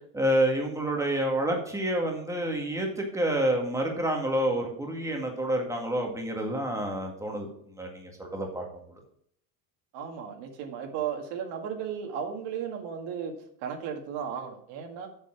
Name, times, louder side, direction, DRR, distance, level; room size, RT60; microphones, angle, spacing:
voice 1, 0.1-7.5 7.8-8.7, right 1 dB, 5° right, 1 dB, 1.9 m, -28 dB
voice 2, 9.9-13.3 13.6-15.1, right 7 dB, 65° right, 4 dB, 2.0 m, -35 dB
7.4 x 6.9 x 5.7 m, 0.65 s
cardioid pair, 155°, 45 cm